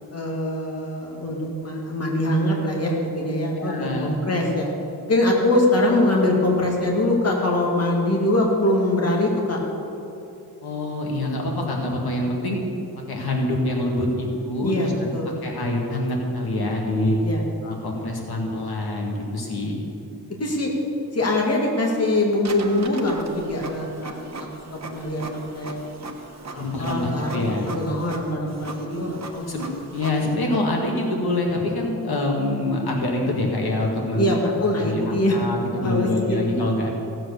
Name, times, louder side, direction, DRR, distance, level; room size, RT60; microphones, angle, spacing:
voice 1, 0.1-4.7 5.0-9.6 14.5-15.4 17.2-17.4 20.4-20.7 21.1-25.2 25.5-25.8 26.5-29.5 34.2-35.4 35.8-36.4, left 1 dB, 40° left, -1 dB, 1.9 m, -23 dB
voice 2, 3.6-4.1 10.6-12.6 13.1-15.1 15.4-17.2 17.6-19.8 26.5-27.7 28.8-29.0 29.5-29.7 29.9-34.3 34.8-36.9, left 1 dB, 80° left, 0 dB, 2.1 m, -25 dB
Printer, 22.4-30.3, right 3 dB, 45° right, 1.1 m, -39 dB
16.0 x 7.7 x 6.7 m, 2.9 s
wide cardioid pair, 145°, 37 cm